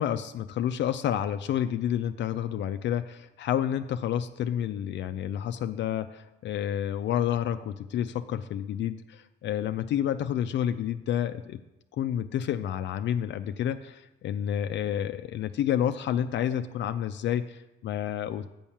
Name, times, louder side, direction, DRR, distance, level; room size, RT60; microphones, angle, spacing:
voice 1, 0.0-11.6 12.0-18.5, left 10 dB, 65° left, 9 dB, 0.4 m, -29 dB
7.2 x 5.4 x 7.0 m, 0.99 s
cardioid pair, 90°, 20 cm